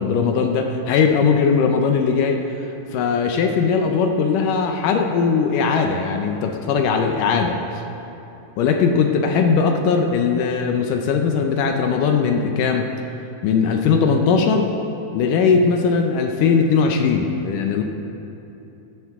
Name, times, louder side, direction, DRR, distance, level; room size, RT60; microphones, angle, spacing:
voice 1, 0.0-7.6 8.6-12.9 13.4-14.7 15.1-17.8, left 5 dB, 80° left, 4 dB, 2.3 m, -19 dB
16.0 x 15.0 x 3.6 m, 2.9 s
omnidirectional pair, 3.7 m